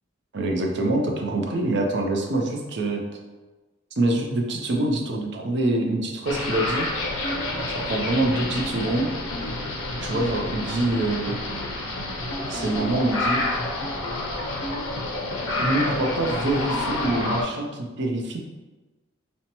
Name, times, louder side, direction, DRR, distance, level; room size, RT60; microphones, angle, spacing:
voice 1, 0.3-3.0 4.0-6.9 7.7-9.1 10.0-11.3 12.5-13.4 15.6-18.4, right 2 dB, 60° right, 1 dB, 0.6 m, -25 dB
sound 1, 6.3-17.4, left 2 dB, 85° left, 0.6 m, -28 dB
5.3 x 2.1 x 2.9 m, 1.2 s
head